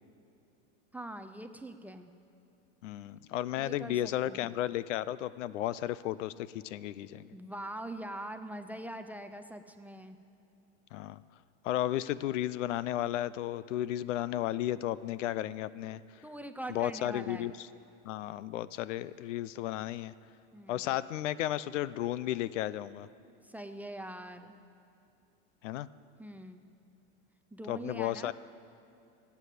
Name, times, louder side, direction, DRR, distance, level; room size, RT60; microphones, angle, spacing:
voice 1, 0.9-2.1 3.6-4.5 7.3-10.2 16.2-17.5 20.5-21.0 23.4-24.5 26.2-26.7 27.5-28.3, right 1 dB, 5° right, 6 dB, 0.4 m, -43 dB
voice 2, 2.8-7.3 10.9-11.2 11.6-16.0 16.7-17.5 18.0-20.1 20.7-23.1 25.6-25.9 27.7-28.3, left 13 dB, 85° left, 18 dB, 0.6 m, -33 dB
17.5 x 8.3 x 8.3 m, 2.7 s
supercardioid pair, 125°, 36 cm